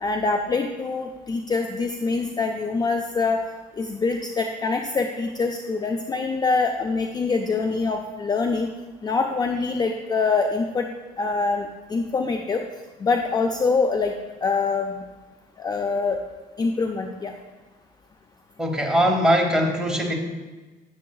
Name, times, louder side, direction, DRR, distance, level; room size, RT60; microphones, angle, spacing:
voice 1, 0.0-3.4 3.8-8.7 9.0-10.9 11.2-12.6 13.0-14.1 14.4-15.0 15.6-16.2 16.6-17.3, left 4 dB, 25° left, 4 dB, 0.4 m, -24 dB
voice 2, 18.6-20.1, equal, 5° right, 1 dB, 1.1 m, -21 dB
8.5 x 7.0 x 2.3 m, 1.2 s
cardioid pair, 110°, 17 cm